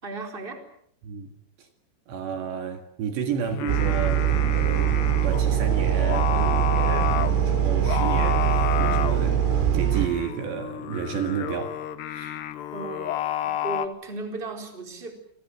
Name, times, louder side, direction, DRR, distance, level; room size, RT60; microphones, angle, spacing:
voice 1, 0.0-0.6 12.7-15.1, right 3 dB, 10° right, 3.8 m, -35 dB
voice 2, 1.0-1.3 1.6-1.7 2.1-11.8 12.1-12.4, right 7 dB, 65° right, 3.9 m, -32 dB
Singing, 3.4-13.9, left 12 dB, 70° left, 2.9 m, -31 dB
sound 1, 3.7-10.1, right 11 dB, 85° right, 4.8 m, -22 dB
29.0 x 23.5 x 7.6 m
omnidirectional pair, 5.7 m